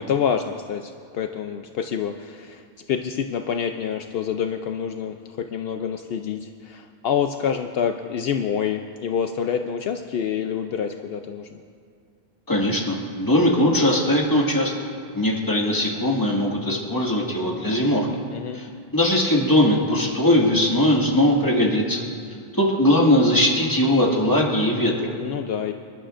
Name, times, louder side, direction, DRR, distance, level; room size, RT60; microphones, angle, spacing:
voice 1, 0.1-2.6 2.9-11.6 18.3-18.6 25.2-25.7, left 7 dB, 75° left, 6 dB, 0.8 m, -27 dB
voice 2, 12.5-14.7 15.1-18.1 18.5-18.7 18.9-22.0 22.5-25.1, left 1 dB, 20° left, -3 dB, 1.9 m, -20 dB
27.0 x 11.5 x 2.5 m, 2.3 s
omnidirectional pair, 1.0 m